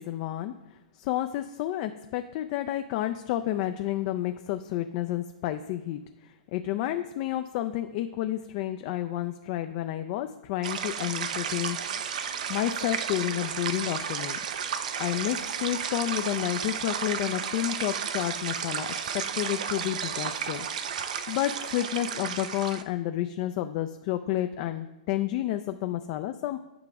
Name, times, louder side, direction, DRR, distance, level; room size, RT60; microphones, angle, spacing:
voice 1, 0.0-12.0 12.5-14.4 15.0-18.9 19.1-20.7 21.0-26.6, left 13 dB, 45° left, 8 dB, 0.3 m, -30 dB
sound 1, 10.6-22.8, right 7 dB, 65° right, 0.6 m, -33 dB
8.7 x 4.8 x 3.5 m, 0.97 s
hypercardioid pair, 130°, 4 cm